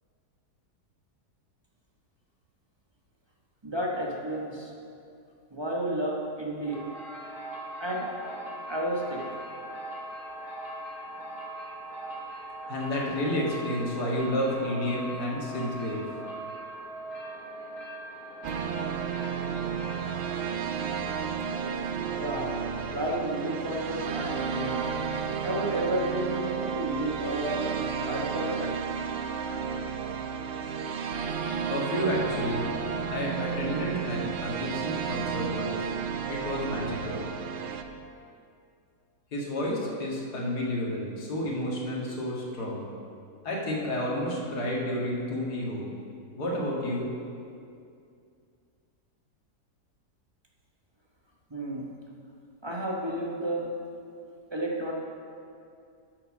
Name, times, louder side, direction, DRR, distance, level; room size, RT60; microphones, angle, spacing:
voice 1, 3.6-4.7 5.5-6.9 7.8-8.1 8.7-9.4 22.1-22.6 22.9-25.0 25.4-28.8 51.5-51.9 52.6-53.8 54.5-54.9, right 1 dB, 20° right, -3 dB, 0.9 m, -32 dB
sound 1, 6.6-23.0, right 1 dB, 55° left, 1.9 m, -41 dB
voice 2, 12.7-16.0 31.7-32.7 33.1-36.0 36.3-37.2 39.3-42.9 43.4-45.9 46.4-47.1, left 1 dB, 75° left, -4 dB, 2.3 m, -30 dB
sound 2, 18.4-37.8, right 6 dB, 75° right, 0.5 m, -32 dB
8.9 x 6.5 x 6.2 m, 2.4 s
omnidirectional pair, 1.7 m